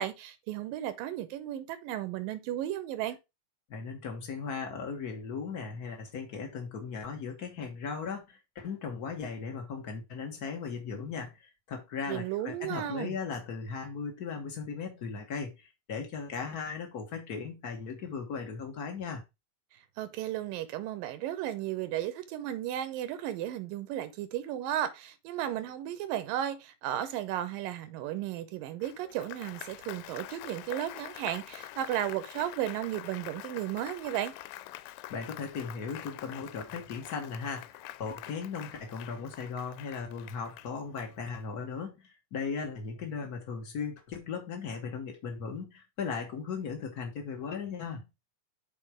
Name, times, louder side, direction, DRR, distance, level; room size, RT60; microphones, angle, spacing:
voice 1, 0.0-3.2 12.1-13.2 20.0-34.3, right 12 dB, 90° right, 2.6 m, -34 dB
voice 2, 3.7-19.2 35.1-48.0, left 5 dB, 70° left, 0.9 m, -37 dB
Applause, 28.8-41.5, left 15 dB, 90° left, 2.3 m, -46 dB
6.3 x 4.5 x 4.8 m
omnidirectional pair, 3.9 m